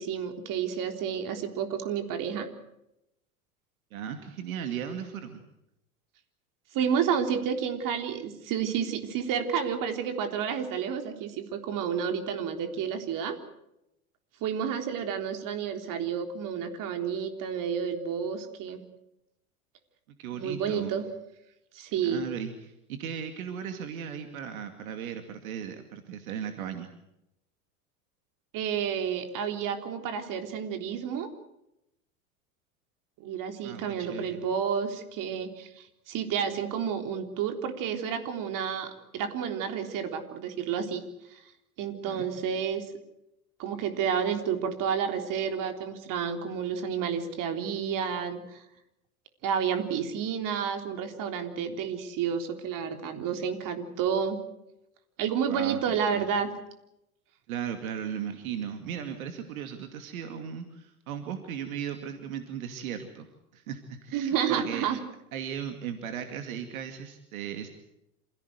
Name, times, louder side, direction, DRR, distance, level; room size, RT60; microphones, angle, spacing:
voice 1, 0.0-2.5 6.7-13.4 14.4-18.8 20.3-21.1 21.7-22.2 28.5-31.3 33.2-41.0 41.3-41.4 41.8-42.8 43.6-48.6 49.4-54.4 55.2-56.5 64.1-65.0, right 7 dB, 45° right, 6 dB, 3.8 m, -30 dB
voice 2, 3.9-5.4 20.2-20.9 21.9-26.9 33.6-34.4 42.0-42.3 55.5-56.3 57.5-64.9 65.3-67.7, right 8 dB, 70° right, 7 dB, 2.5 m, -37 dB
28.0 x 16.5 x 8.0 m, 0.85 s
hypercardioid pair, 85°, 43 cm